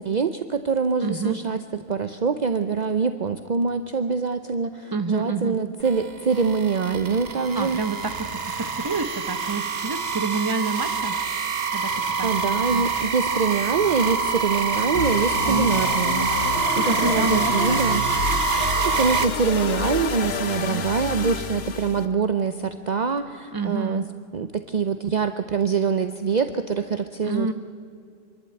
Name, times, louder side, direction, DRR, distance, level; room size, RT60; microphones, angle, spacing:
voice 1, 0.0-1.6 1.9-7.8 11.9-18.0 18.6-24.0 24.3-27.5, right 5 dB, 45° right, 9 dB, 0.8 m, -24 dB
voice 2, 1.0-1.4 4.9-5.6 7.5-11.2 11.7-12.9 15.5-15.7 16.7-17.8 20.6-20.9 23.5-24.1 27.2-27.5, right 3 dB, 20° right, 9 dB, 1.0 m, -28 dB
sound 1, 5.8-19.2, right 5 dB, 70° right, 1.3 m, -26 dB
sound 2, 14.9-22.1, left 5 dB, 75° left, 1.2 m, -29 dB
26.5 x 12.0 x 8.9 m, 2.4 s
omnidirectional pair, 1.1 m